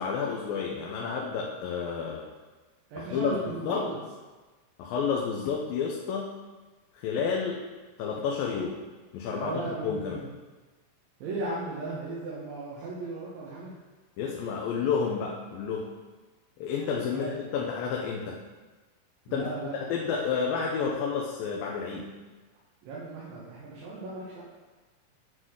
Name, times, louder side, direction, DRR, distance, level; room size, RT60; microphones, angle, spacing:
voice 1, 0.0-2.3 3.0-3.9 4.8-6.3 6.9-7.6 8.0-8.8 9.1-9.5 9.8-10.2 14.2-15.9 16.6-18.4 19.3-19.5 19.8-22.1, left 6 dB, 90° left, -1 dB, 2.5 m, -30 dB
voice 2, 2.9-4.0 9.3-10.2 11.2-13.7 17.1-17.3 19.3-19.8 22.8-24.4, right 2 dB, 85° right, -7 dB, 3.1 m, -36 dB
9.5 x 3.8 x 6.4 m, 1.3 s
omnidirectional pair, 3.9 m